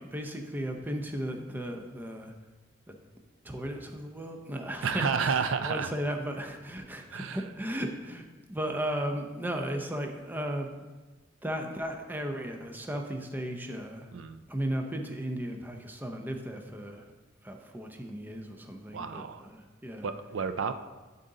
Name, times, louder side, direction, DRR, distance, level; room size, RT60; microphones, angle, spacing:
voice 1, 0.0-2.3 2.9-3.0 3.4-8.2 8.5-10.7 11.4-14.1 14.5-17.0 17.4-20.1, equal, 10° right, 4 dB, 0.6 m, -35 dB
voice 2, 4.8-5.9 7.1-7.4 14.1-14.4 18.9-19.5 20.0-20.7, right 6 dB, 70° right, 10 dB, 0.4 m, -30 dB
11.5 x 4.0 x 3.8 m, 1.2 s
head